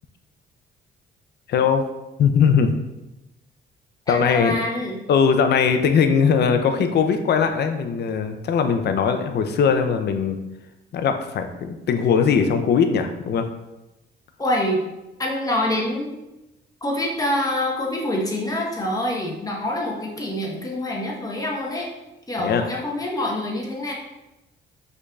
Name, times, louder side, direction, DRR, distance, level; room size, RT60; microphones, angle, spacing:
voice 1, 1.5-1.9 2.2-2.7 4.1-4.6 5.1-10.4 10.9-13.5 22.4-22.7, left 6 dB, 60° left, 7 dB, 0.5 m, -20 dB
voice 2, 4.1-5.0 14.4-14.8 15.2-16.1 16.8-21.9 22.3-23.9, left 1 dB, 20° left, -1 dB, 1.0 m, -25 dB
5.1 x 3.8 x 2.3 m, 0.97 s
cardioid pair, 90°, 20 cm